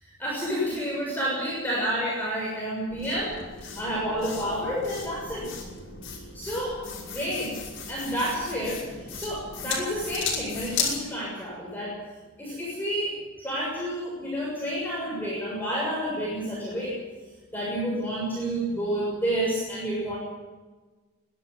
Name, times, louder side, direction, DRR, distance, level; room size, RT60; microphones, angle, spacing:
voice 1, 0.2-5.5 6.3-7.6 7.9-8.8 9.1-12.0 12.4-17.0 17.5-20.2, equal, 10° left, -5 dB, 6.9 m, -30 dB
sound 1, 2.9-11.0, left 5 dB, 70° left, 5.8 m, -35 dB
23.0 x 12.5 x 9.4 m, 1.3 s
head